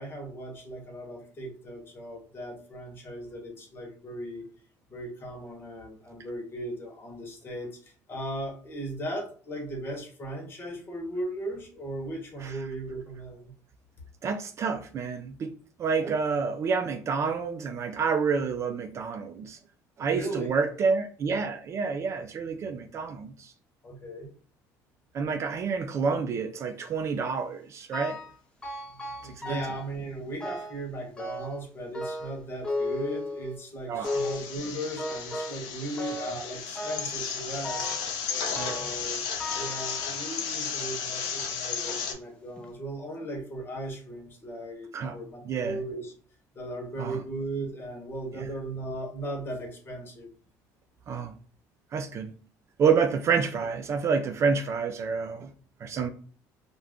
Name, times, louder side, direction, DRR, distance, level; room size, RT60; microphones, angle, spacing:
voice 1, 0.0-4.5 4.9-13.5 20.1-20.5 23.8-24.3 28.9-37.9 38.5-39.3 39.5-46.1 46.5-50.3, right 1 dB, 30° left, 1.0 m, -37 dB
voice 2, 14.2-15.5 15.8-19.6 20.0-23.5 25.1-28.2 29.2-29.6 33.9-34.3 38.6-38.9 44.9-45.2 45.5-45.8 47.0-47.2 48.3-48.5 51.1-51.3 51.9-52.3 52.8-55.5 55.8-56.1, right 5 dB, 40° right, 0.3 m, -28 dB
sound 1, 27.9-28.4 28.6-29.9 30.4-30.8 31.2-31.6 31.9-33.6 34.0-34.5 35.0-35.7 36.0-36.4 36.8-37.2 37.6-38.1 38.6-39.0 39.4-40.5 41.1-41.2 42.0-42.1 42.6-42.7, left 1 dB, 10° left, 0.6 m, -35 dB
sound 2, 34.0-42.1, left 6 dB, 80° left, 0.6 m, -34 dB
2.5 x 2.2 x 3.4 m
cardioid pair, 120°, 7 cm